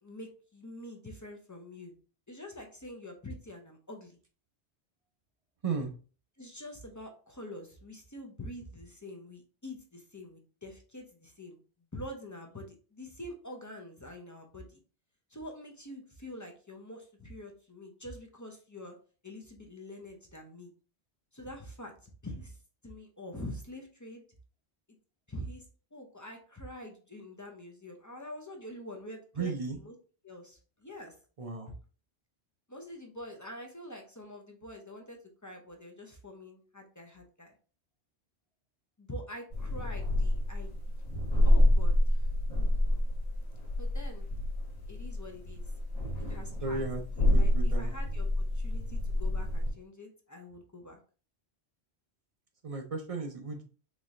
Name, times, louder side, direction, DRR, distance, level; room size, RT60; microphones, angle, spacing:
voice 1, 0.0-1.9 2.3-4.2 6.4-11.6 11.9-14.8 15.3-18.9 19.2-20.7 21.3-22.6 22.8-24.3 25.3-25.7 25.9-29.9 30.2-31.1 32.7-37.5 39.0-40.7 41.4-42.3 43.8-44.3 44.9-45.6 46.3-46.8 47.2-51.0, left 1 dB, 20° left, 2 dB, 0.5 m, -45 dB
voice 2, 29.4-29.8 31.4-31.7 46.6-47.9 52.6-53.6, right 4 dB, 45° right, 4 dB, 0.5 m, -35 dB
sound 1, 39.5-49.7, left 1 dB, 40° left, 0.9 m, -28 dB
4.0 x 3.0 x 2.4 m, 0.38 s
omnidirectional pair, 1.1 m